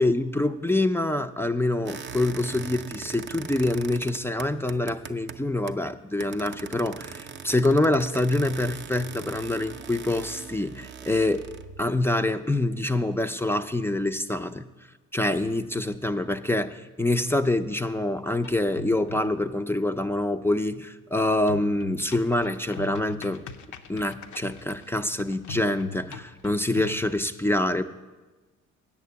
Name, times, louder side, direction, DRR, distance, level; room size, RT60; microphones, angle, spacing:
voice 1, 0.0-11.5 11.8-14.7 15.1-23.4 23.9-27.8, left 1 dB, 10° left, 10 dB, 0.4 m, -26 dB
sound 1, 1.9-5.9 6.2-11.8, right 6 dB, 35° right, 0.6 m, -41 dB
sound 2, 18.4-19.5 21.5-27.0, left 4 dB, 75° left, 0.7 m, -41 dB
8.5 x 6.4 x 8.0 m, 1.2 s
cardioid pair, 90°, 30 cm